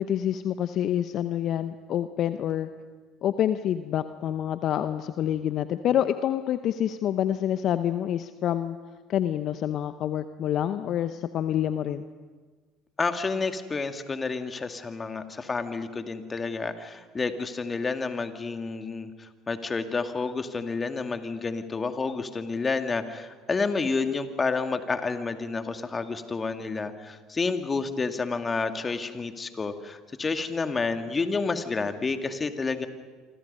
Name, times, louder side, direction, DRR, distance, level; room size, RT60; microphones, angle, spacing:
voice 1, 0.0-2.7 3.2-8.8 9.1-12.0, left 10 dB, 55° left, 11 dB, 0.8 m, -27 dB
voice 2, 13.0-32.9, left 4 dB, 25° left, 8 dB, 2.1 m, -30 dB
27.5 x 25.5 x 5.5 m, 1.4 s
hypercardioid pair, 65°, 0 cm